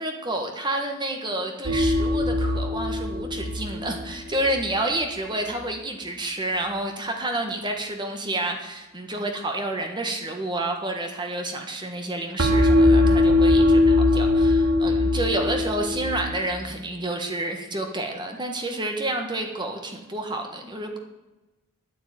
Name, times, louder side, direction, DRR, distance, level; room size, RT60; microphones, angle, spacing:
voice 1, 0.0-21.0, right 1 dB, 20° right, 3 dB, 1.6 m, -29 dB
sound 1, 1.7-4.7 12.4-16.4, left 2 dB, 65° right, 2.0 m, -21 dB
10.5 x 9.8 x 9.0 m, 1.0 s
head